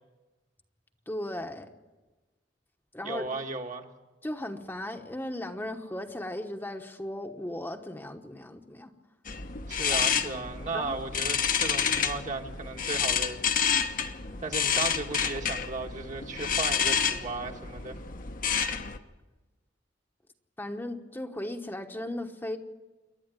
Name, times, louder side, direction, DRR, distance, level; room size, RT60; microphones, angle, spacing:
voice 1, 1.1-1.7 2.9-3.3 4.2-8.9 9.9-10.0 10.7-11.0 20.6-22.6, left 1 dB, 10° left, 4 dB, 1.1 m, -36 dB
voice 2, 3.0-3.8 9.7-13.4 13.9-18.0, right 3 dB, 45° right, 3 dB, 1.6 m, -36 dB
sound 1, 9.3-19.0, left 7 dB, 50° left, 1.1 m, -29 dB
28.0 x 11.5 x 9.2 m, 1.2 s
head